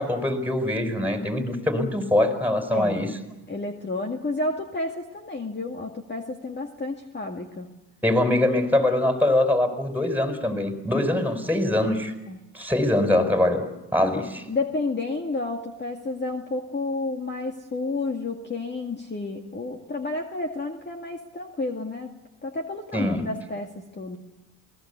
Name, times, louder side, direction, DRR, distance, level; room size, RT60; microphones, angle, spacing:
voice 1, 0.0-3.1 8.0-12.1 12.5-13.6 13.9-14.4 22.9-23.3, left 1 dB, 5° right, 6 dB, 4.7 m, -23 dB
voice 2, 2.7-3.1 3.5-7.7 11.1-11.2 12.3-12.4 14.0-22.1 22.4-24.2, left 2 dB, 25° left, 3 dB, 2.1 m, -31 dB
28.5 x 19.5 x 8.2 m, 0.97 s
supercardioid pair, 75°, 43 cm